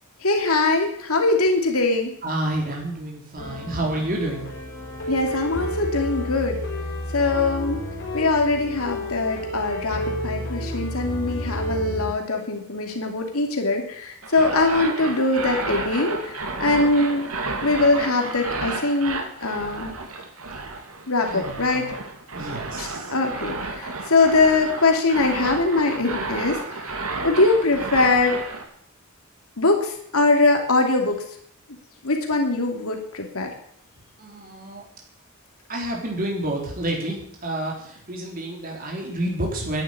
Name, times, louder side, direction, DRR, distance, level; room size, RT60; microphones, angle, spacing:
voice 1, 0.2-2.1 5.1-6.6 7.1-7.8 8.1-17.3 17.6-19.9 21.1-21.9 22.8-26.9 27.2-28.4 29.6-31.2 32.0-33.5, left 3 dB, 85° left, 3 dB, 2.7 m, -22 dB
voice 2, 2.2-4.5 21.3-21.9 22.3-23.1 23.4-23.5 34.2-34.8 35.7-39.8, right 1 dB, 40° right, -1 dB, 3.9 m, -29 dB
sound 1, 3.4-12.1, equal, 55° left, 5.3 m, -30 dB
sound 2, 14.2-28.6, right 3 dB, 85° right, 2.7 m, -32 dB
11.5 x 10.5 x 9.6 m, 0.65 s
head